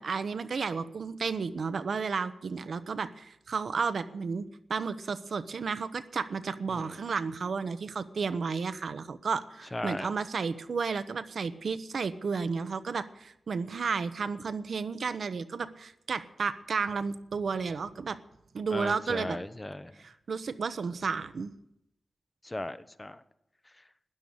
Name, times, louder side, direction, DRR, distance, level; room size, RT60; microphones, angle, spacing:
voice 1, 0.0-4.4 4.7-18.2 18.5-19.4 20.0-21.5, right 5 dB, 70° right, 13 dB, 0.9 m, -32 dB
voice 2, 9.7-10.1 18.7-20.0 22.4-23.2, left 1 dB, 20° left, 14 dB, 0.9 m, -37 dB
13.0 x 10.5 x 9.6 m, 0.81 s
cardioid pair, 70°, 0 cm